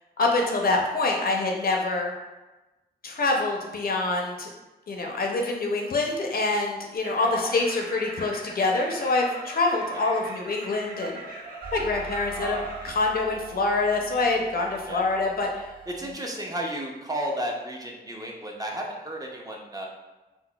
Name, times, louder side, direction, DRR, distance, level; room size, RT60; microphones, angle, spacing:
voice 1, 0.2-2.1 3.0-4.5 4.9-11.2 11.7-12.6 12.8-15.7, left 3 dB, 60° left, 1 dB, 0.5 m, -25 dB
sound 1, 7.0-12.9, right 1 dB, 60° right, 0.9 m, -41 dB
sound 2, 11.6-16.1, right 6 dB, 85° right, 1.4 m, -44 dB
voice 2, 12.4-12.7 14.9-15.1 15.9-19.9, right 1 dB, 20° right, -1 dB, 0.5 m, -33 dB
3.7 x 2.0 x 2.2 m, 1.1 s
cardioid pair, 75°, 17 cm